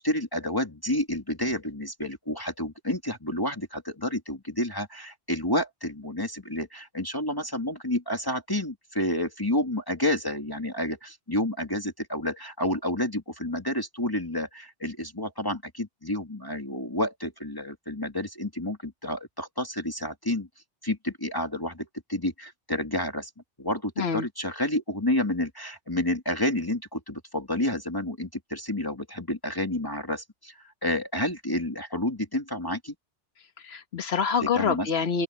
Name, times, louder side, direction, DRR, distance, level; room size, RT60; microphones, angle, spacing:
voice 1, 0.0-20.5 20.8-23.3 23.6-32.9 34.4-34.9, left 1 dB, 20° left, 2.5 m, -30 dB
voice 2, 33.6-35.2, left 6 dB, 65° left, 1.5 m, -26 dB
omnidirectional pair, 1.2 m